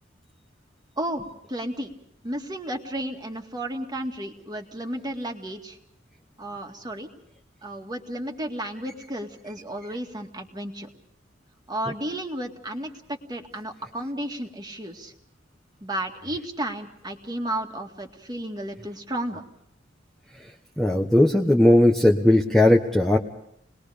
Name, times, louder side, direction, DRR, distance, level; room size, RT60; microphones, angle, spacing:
voice 1, 1.5-1.9 2.2-5.8 6.4-7.1 7.6-10.9 11.7-15.1 15.8-19.4, right 1 dB, 20° right, 3 dB, 2.0 m, -33 dB
voice 2, 20.4-23.2, left 1 dB, ahead, 1 dB, 1.2 m, -18 dB
29.0 x 20.5 x 5.1 m, 0.74 s
head